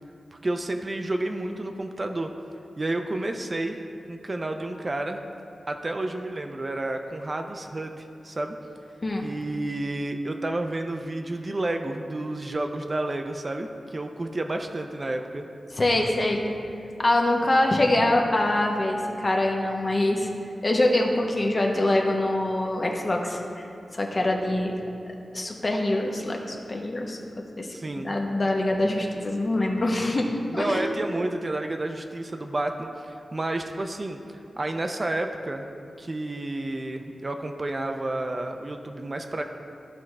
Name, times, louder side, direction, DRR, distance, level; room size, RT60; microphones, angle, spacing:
voice 1, 0.3-2.3 2.8-3.8 4.1-5.2 5.7-8.6 9.2-15.4 27.7-28.1 30.5-34.2 34.6-35.7 36.0-39.4, right 2 dB, 30° right, 5 dB, 0.4 m, -30 dB
voice 2, 15.7-16.4 17.0-20.3 20.6-23.6 23.9-24.7 25.3-27.2 27.6-27.7 28.0-30.3 30.5-30.8, left 1 dB, 35° left, 1 dB, 0.9 m, -24 dB
13.5 x 4.6 x 3.2 m, 2.6 s
wide cardioid pair, 105°, 0 cm